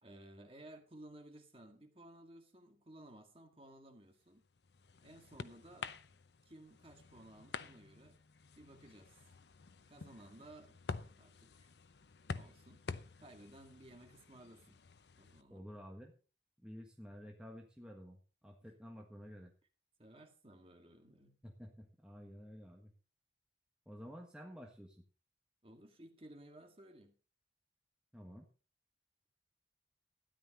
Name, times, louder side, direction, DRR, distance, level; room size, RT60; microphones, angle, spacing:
voice 1, 0.0-4.4 5.0-6.0 6.5-8.2 8.6-9.2 9.9-10.8 11.2-11.7 12.3-12.8 13.2-14.8 15.2-15.6 20.0-21.4 25.6-27.2, right 1 dB, 30° right, 4 dB, 1.9 m, -57 dB
sound 1, 4.3-15.4, left 4 dB, 75° left, 0.7 m, -49 dB
voice 2, 15.5-16.1 16.6-19.5 21.4-22.9 23.8-25.0 28.1-28.5, equal, 5° right, 1 dB, 1.4 m, -52 dB
13.0 x 10.5 x 4.1 m, 0.36 s
head